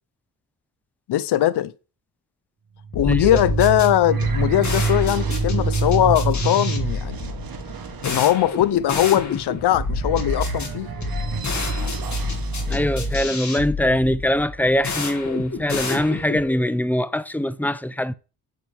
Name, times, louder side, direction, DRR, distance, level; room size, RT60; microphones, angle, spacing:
voice 1, 1.1-1.7 2.9-7.3 8.0-10.9, left 13 dB, 85° left, 0.7 m, -20 dB
sound 1, 2.8-13.3, right 5 dB, 60° right, 1.5 m, -28 dB
sound 2, 2.9-16.5, left 2 dB, 45° left, 2.3 m, -28 dB
voice 2, 3.1-3.4 12.7-18.1, left 1 dB, 5° left, 0.6 m, -22 dB
7.9 x 7.5 x 3.5 m
cardioid pair, 70°, 39 cm